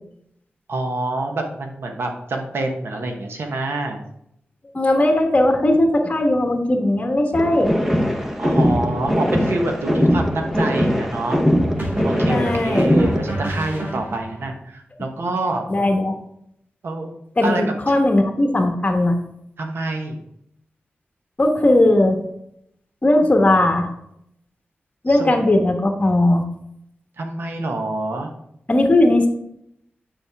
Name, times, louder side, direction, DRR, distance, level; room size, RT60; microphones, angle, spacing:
voice 1, 0.7-4.0 8.4-11.4 12.0-15.7 16.8-17.1 17.4-18.0 19.6-20.2 25.1-25.4 27.2-28.3, right 2 dB, 75° right, 3 dB, 1.1 m, -26 dB
voice 2, 4.7-7.7 12.3-12.9 15.7-16.2 17.4-19.2 21.4-22.2 23.0-23.9 25.0-26.4 28.7-29.3, left 1 dB, 35° left, 3 dB, 1.2 m, -17 dB
sound 1, 7.3-13.3, equal, 10° right, 1.0 m, -20 dB
sound 2, 11.8-14.5, right 1 dB, 55° right, 2.2 m, -30 dB
7.1 x 5.5 x 3.5 m, 0.75 s
wide cardioid pair, 75°, 4 cm